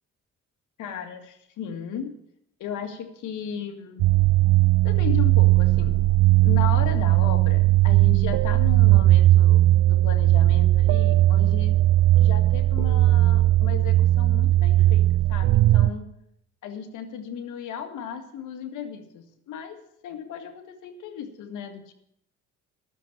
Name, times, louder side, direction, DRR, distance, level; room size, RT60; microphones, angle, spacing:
voice 1, 0.8-2.2 2.6-4.1 4.8-6.0 6.4-11.8 12.2-16.1 16.6-21.9, left 7 dB, 85° left, 6 dB, 2.0 m, -35 dB
sound 1, 4.0-15.9, right 15 dB, 75° right, 0.6 m, -18 dB
12.0 x 7.3 x 10.0 m, 0.73 s
cardioid pair, 90°, 30 cm